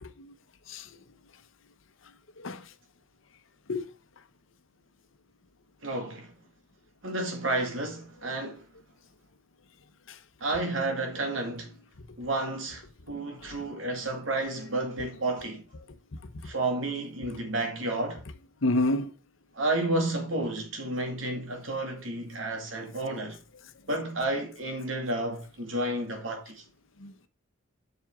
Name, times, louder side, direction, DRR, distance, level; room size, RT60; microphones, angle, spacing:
voice 1, 0.0-0.3 0.7-0.8 2.4-2.6 3.7-3.8 13.4-13.5 18.6-19.1 27.0-27.1, left 2 dB, 75° left, 0.8 m, -28 dB
voice 2, 5.8-6.3 7.0-8.7 10.4-11.7 12.2-15.6 16.4-18.2 19.5-23.4 23.9-26.6, right 2 dB, 80° right, 2.2 m, -31 dB
7.7 x 6.1 x 3.6 m
head